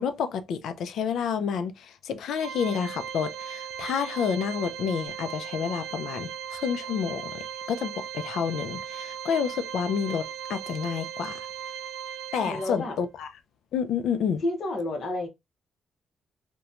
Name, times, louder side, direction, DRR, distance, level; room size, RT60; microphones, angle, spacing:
voice 1, 0.0-11.5 12.3-13.3 13.7-14.4, left 7 dB, 75° left, 0.4 m, -29 dB
Organ, 2.3-13.0, right 9 dB, 80° right, 0.4 m, -38 dB
voice 2, 12.4-12.9 14.4-15.3, left 1 dB, 50° left, 0.8 m, -30 dB
2.9 x 2.1 x 2.4 m
cardioid pair, 150°, 0 cm